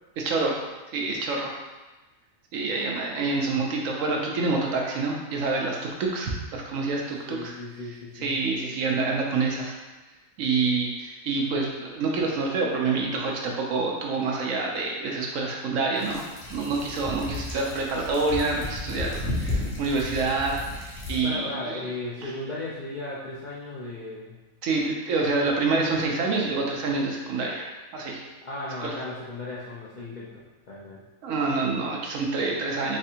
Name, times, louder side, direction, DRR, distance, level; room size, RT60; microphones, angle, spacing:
voice 1, 0.2-0.6 0.9-1.6 2.5-7.5 8.1-9.8 10.4-20.6 20.8-21.8 22.2-22.3 24.6-28.2 28.8-29.0 31.2-33.0, right 3 dB, 70° right, -1 dB, 1.0 m, -27 dB
voice 2, 7.2-8.3 21.2-24.4 28.4-30.4 30.7-31.0, left 2 dB, 75° left, -7 dB, 0.4 m, -36 dB
sound 1, 16.0-21.2, left 2 dB, 50° left, 1.0 m, -33 dB
3.4 x 3.2 x 2.8 m, 1.1 s
omnidirectional pair, 1.5 m